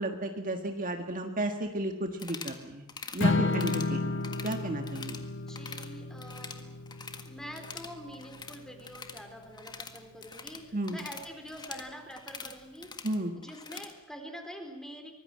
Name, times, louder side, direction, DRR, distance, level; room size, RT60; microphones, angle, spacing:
voice 1, 0.0-2.9 3.1-5.2 10.7-11.0 13.0-13.3, right 1 dB, 40° right, 5 dB, 1.7 m, -33 dB
sound 1, 2.1-2.6 2.9-3.2 3.5-3.9 4.2-5.2 5.5-5.9 6.2-7.3 7.5-13.9, left 4 dB, 20° left, 1.7 m, -44 dB
Strum, 3.2-9.5, left 3 dB, 60° left, 1.5 m, -33 dB
voice 2, 5.4-6.7 7.2-12.9 13.4-15.1, equal, 5° left, 5 dB, 3.8 m, -45 dB
24.5 x 19.5 x 7.6 m, 0.98 s
head